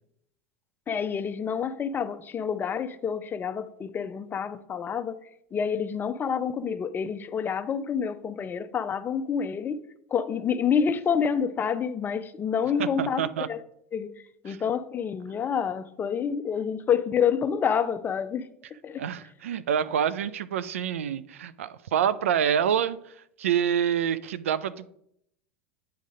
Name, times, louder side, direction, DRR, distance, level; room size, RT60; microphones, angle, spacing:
voice 1, 0.9-5.2 5.5-9.8 10.1-13.2 13.5-13.6 13.9-14.1 14.4-18.4 18.8-19.0, left 7 dB, 25° left, 0.6 m, -28 dB
voice 2, 12.8-13.5 14.5-14.6 19.0-23.0 23.4-24.9, right 8 dB, 75° right, 0.4 m, -27 dB
8.5 x 3.9 x 5.0 m
hypercardioid pair, 85°, 7 cm